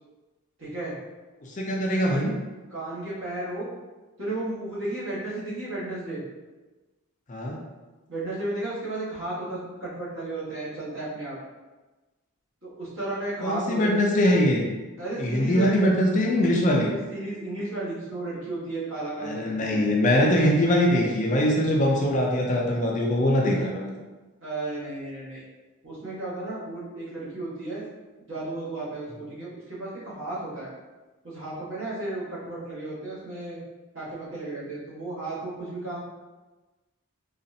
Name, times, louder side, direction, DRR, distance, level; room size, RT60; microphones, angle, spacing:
voice 1, 0.6-0.9 2.7-3.7 4.2-6.2 8.1-11.4 12.6-14.0 15.0-15.9 16.8-19.9 24.4-25.4 25.8-27.8 28.3-30.7 31.2-33.6 33.9-36.0, right 2 dB, 60° right, -8 dB, 1.4 m, -33 dB
voice 2, 1.4-2.3 7.3-7.6 13.4-14.7 15.2-16.9 19.2-23.9, left 1 dB, 35° left, -1 dB, 0.4 m, -22 dB
4.0 x 2.4 x 2.7 m, 1.2 s
head